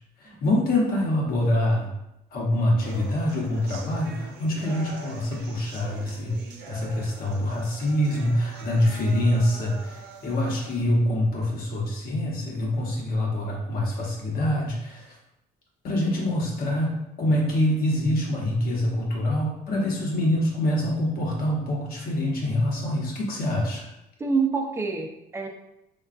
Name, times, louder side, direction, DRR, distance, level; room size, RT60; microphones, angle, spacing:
voice 1, 0.2-1.9 2.3-15.1 15.8-23.9, left 1 dB, 60° left, -2 dB, 0.9 m, -25 dB
sound 1, 2.8-10.8, right 4 dB, 80° right, 0.5 m, -44 dB
voice 2, 24.2-25.5, right 4 dB, 15° right, 2 dB, 0.4 m, -27 dB
3.6 x 2.3 x 2.5 m, 0.87 s
cardioid pair, 110°, 17 cm